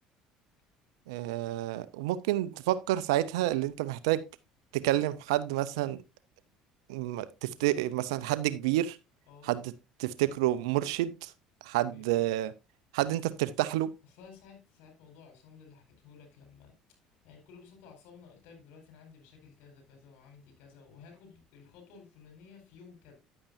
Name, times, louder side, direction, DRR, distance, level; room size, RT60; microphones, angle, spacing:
voice 1, 1.1-4.2 4.7-6.0 6.9-9.0 9.4-9.7 10.0-11.3 11.6-12.5 12.9-13.9, right 14 dB, 85° right, 0.5 m, -29 dB
voice 2, 7.4-8.0 9.3-9.5 11.9-12.2 14.1-16.7 17.2-23.1, left 5 dB, 75° left, 4.6 m, -54 dB
10.0 x 8.7 x 2.6 m
supercardioid pair, 80°, 3 cm